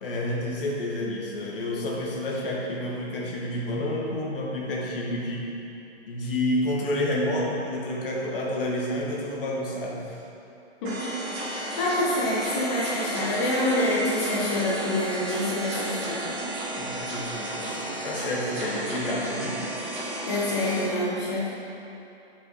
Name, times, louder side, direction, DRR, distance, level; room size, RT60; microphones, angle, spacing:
voice 1, 0.0-5.5 6.1-10.2 16.7-19.6, left 1 dB, 55° left, -3 dB, 1.5 m, -29 dB
sound 1, 10.8-20.8, right 1 dB, 15° right, 1.1 m, -33 dB
voice 2, 11.8-16.4 20.2-21.5, left 1 dB, 25° left, -7 dB, 1.1 m, -26 dB
8.2 x 5.6 x 4.1 m, 2.9 s
hypercardioid pair, 160°, 34 cm